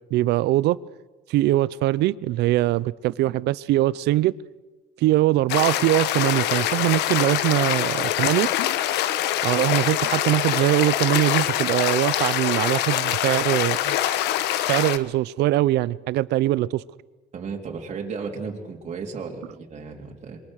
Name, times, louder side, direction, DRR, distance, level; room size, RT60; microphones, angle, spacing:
voice 1, 0.1-0.8 1.3-4.3 5.0-8.5 9.4-14.2 14.5-16.7, right 16 dB, 80° right, 0.7 m, -22 dB
sound 1, 5.5-15.0, left 12 dB, 85° left, 1.2 m, -24 dB
voice 2, 17.3-20.4, right 5 dB, 40° right, 3.7 m, -34 dB
27.5 x 23.5 x 6.5 m
cardioid pair, 110°, 17 cm